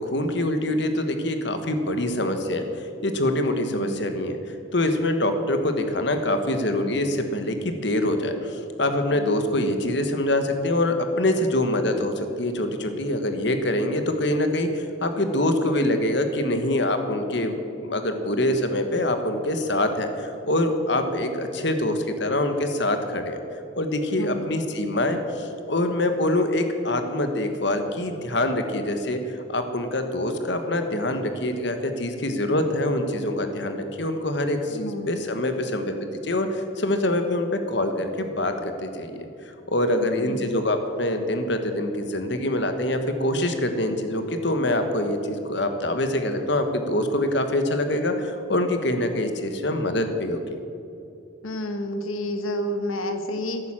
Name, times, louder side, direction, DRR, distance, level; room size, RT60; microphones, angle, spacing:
voice 1, 0.1-2.6 3.0-4.4 4.7-23.4 23.8-39.3 39.7-50.4, left 1 dB, 55° left, 7 dB, 1.3 m, -25 dB
voice 2, 3.7-4.0 24.2-24.5 34.7-35.1 40.2-40.5 51.4-53.6, left 1 dB, 90° left, 7 dB, 1.3 m, -30 dB
15.5 x 9.2 x 7.5 m, 2.7 s
head